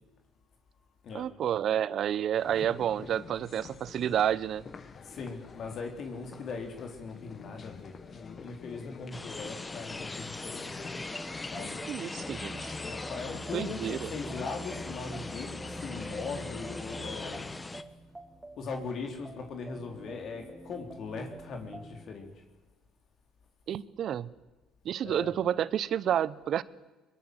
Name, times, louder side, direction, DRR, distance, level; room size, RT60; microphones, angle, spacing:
voice 1, 1.1-4.6 11.9-12.7 13.5-14.1 23.7-24.3 24.8-26.6, right 10 dB, 55° right, 18 dB, 0.9 m, -30 dB
sound 1, 2.3-17.6, left 5 dB, 40° left, 1.7 m, -48 dB
voice 2, 5.0-10.8 11.5-11.8 12.8-17.5 18.6-22.3 25.0-25.3, left 4 dB, 55° left, 4 dB, 3.8 m, -40 dB
sound 2, 9.1-17.8, left 2 dB, 20° left, 1.3 m, -40 dB
sound 3, 10.8-22.1, right 1 dB, 5° right, 4.2 m, -47 dB
22.5 x 22.0 x 7.9 m, 1.2 s
supercardioid pair, 80°, 0 cm